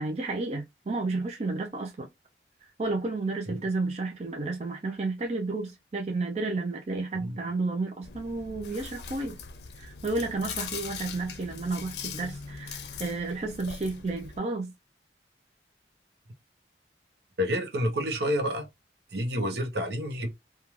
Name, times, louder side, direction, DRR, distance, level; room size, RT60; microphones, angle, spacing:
voice 1, 0.0-2.1 2.8-9.4 9.8-14.7, right 3 dB, 35° right, 0.4 m, -32 dB
Chewing mastication, 8.0-14.4, left 6 dB, 70° left, 0.5 m, -41 dB
voice 2, 17.4-18.7 19.1-20.3, equal, 65° right, 0.8 m, -29 dB
3.1 x 2.2 x 2.4 m
head